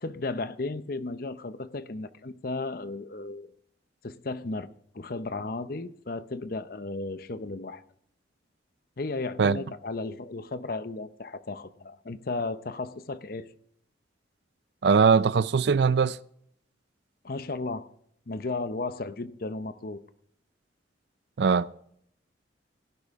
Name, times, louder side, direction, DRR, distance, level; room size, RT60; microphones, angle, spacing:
voice 1, 0.0-3.5 4.0-4.7 4.9-7.8 9.0-13.5 17.2-17.9 18.3-20.0, left 3 dB, 50° left, 0.7 m, -34 dB
voice 2, 14.8-16.2 21.4-21.7, right 5 dB, 60° right, 0.4 m, -21 dB
17.0 x 11.0 x 3.6 m
head